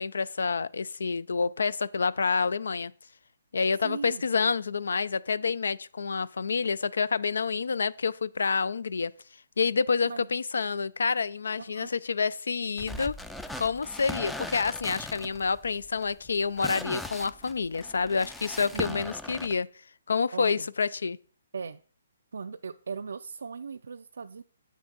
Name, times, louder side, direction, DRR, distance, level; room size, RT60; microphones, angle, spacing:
voice 1, 0.0-2.9 3.5-9.1 9.6-13.2 13.6-19.7 20.1-21.2, left 5 dB, 80° left, 0.3 m, -28 dB
voice 2, 3.8-4.2 10.0-10.3 11.6-11.9 18.7-19.0 20.3-20.7 21.5-21.8 22.3-24.4, right 5 dB, 80° right, 0.3 m, -38 dB
sound 1, 12.8-19.5, left 1 dB, 5° left, 0.3 m, -39 dB
8.3 x 6.0 x 3.9 m
hypercardioid pair, 155°, 0 cm